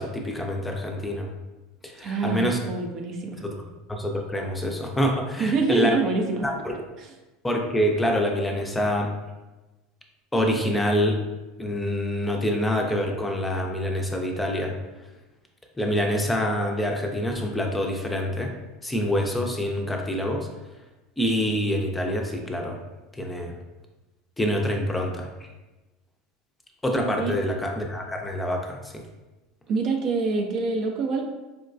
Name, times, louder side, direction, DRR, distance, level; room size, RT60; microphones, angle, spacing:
voice 1, 0.0-1.3 1.8-2.6 3.4-6.0 6.4-6.7 7.4-9.1 10.3-11.2 11.6-14.8 15.8-18.5 18.8-20.5 21.2-22.8 23.1-23.6 24.4-25.3 26.8-29.0, equal, 10° left, 2 dB, 0.5 m, -26 dB
voice 2, 2.0-3.4 5.4-6.5 7.0-7.1 27.2-27.3 29.7-31.2, right 4 dB, 50° right, 2 dB, 0.5 m, -26 dB
4.5 x 2.2 x 2.5 m, 1.1 s
hypercardioid pair, 85°, 0 cm